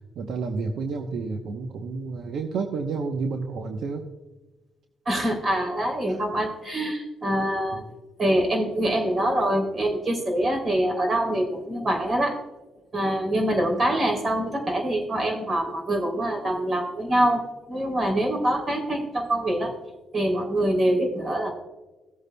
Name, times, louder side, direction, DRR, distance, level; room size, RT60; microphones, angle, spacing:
voice 1, 0.2-4.0 7.7-7.8, right 4 dB, 70° right, 4 dB, 0.8 m, -30 dB
voice 2, 5.0-7.8 8.2-12.4 12.9-19.7 20.1-21.5, right 1 dB, 40° right, 2 dB, 3.0 m, -25 dB
17.0 x 8.0 x 2.2 m, 1.1 s
cardioid pair, 90°, 0 cm